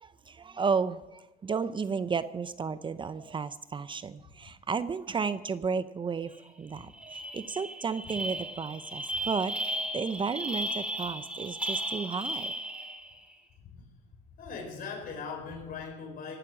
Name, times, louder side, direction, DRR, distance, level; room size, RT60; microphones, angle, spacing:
voice 1, 0.0-9.5 9.9-12.5, right 5 dB, 30° right, 14 dB, 0.6 m, -33 dB
sound 1, 6.3-6.5 6.8-13.2, right 1 dB, 5° right, 2.1 m, -35 dB
voice 2, 14.4-16.4, left 5 dB, 55° left, 1 dB, 4.4 m, -39 dB
17.5 x 11.5 x 6.2 m, 0.98 s
cardioid pair, 110°, 17 cm